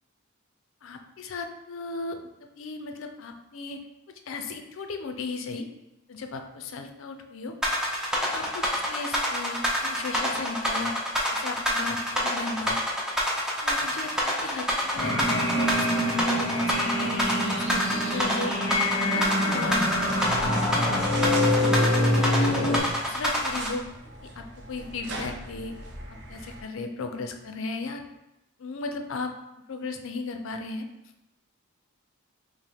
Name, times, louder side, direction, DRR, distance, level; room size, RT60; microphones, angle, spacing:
voice 1, 0.8-2.2 2.6-3.8 4.3-5.7 6.1-7.6 8.3-10.9 11.3-12.8 13.6-18.5 19.0-19.9 20.9-22.8 23.0-23.8 24.2-25.8 26.3-28.0 28.6-29.3 29.7-30.9, left 3 dB, 65° left, 5 dB, 0.4 m, -36 dB
sound 1, 7.6-23.7, equal, 5° right, 0.5 m, -26 dB
sound 2, 15.0-22.8, left 1 dB, 15° left, 1.0 m, -25 dB
sound 3, 19.8-26.6, right 2 dB, 55° right, 0.6 m, -41 dB
5.1 x 2.1 x 3.4 m, 0.93 s
head